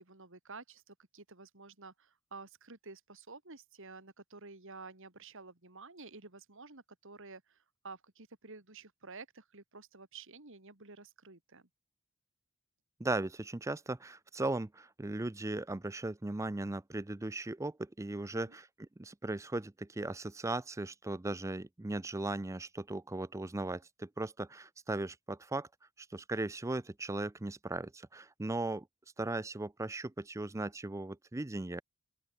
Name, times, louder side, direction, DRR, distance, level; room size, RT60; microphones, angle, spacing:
voice 1, 0.0-11.7 18.4-18.6, right 4 dB, 60° right, 2.7 m, -51 dB
voice 2, 13.0-25.7 26.0-28.9 29.2-31.8, right 2 dB, 15° right, 0.5 m, -37 dB
open air
head